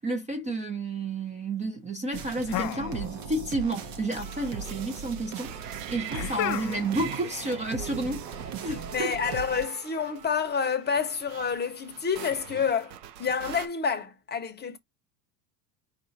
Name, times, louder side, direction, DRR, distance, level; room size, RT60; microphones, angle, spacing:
voice 1, 0.0-9.4, right 2 dB, 15° right, 0.7 m, -31 dB
sound 1, 2.1-9.7, right 6 dB, 50° right, 0.9 m, -38 dB
sound 2, 2.5-3.5 3.7-4.5 6.1-7.0, left 15 dB, 40° left, 0.5 m, -34 dB
sound 3, 4.2-13.7, right 10 dB, 80° right, 0.9 m, -44 dB
voice 2, 8.9-14.8, left 6 dB, 20° left, 0.9 m, -28 dB
4.7 x 2.6 x 4.0 m
supercardioid pair, 105°, 50 cm